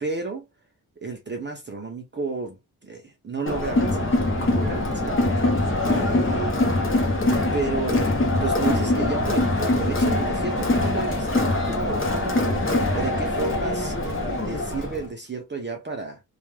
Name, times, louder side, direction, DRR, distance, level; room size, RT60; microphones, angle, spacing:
voice 1, 0.0-0.4 1.0-4.1 4.4-5.2 5.8-6.5 7.5-8.1 8.4-16.2, right 3 dB, 30° right, 0.5 m, -32 dB
Crowd, 3.5-15.0, left 2 dB, 35° left, 0.7 m, -23 dB
2.2 x 2.2 x 3.1 m
wide cardioid pair, 180°, 38 cm